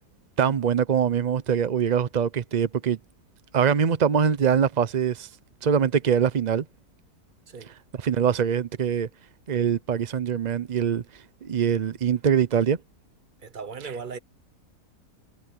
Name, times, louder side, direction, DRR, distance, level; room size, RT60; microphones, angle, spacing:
voice 1, 0.4-3.0 3.5-5.3 5.6-6.6 7.7-9.1 9.5-11.0 11.4-12.8 13.8-14.0, right 7 dB, 65° right, 0.4 m, -23 dB
voice 2, 13.4-14.2, right 5 dB, 35° right, 1.0 m, -37 dB
omnidirectional pair, 1.7 m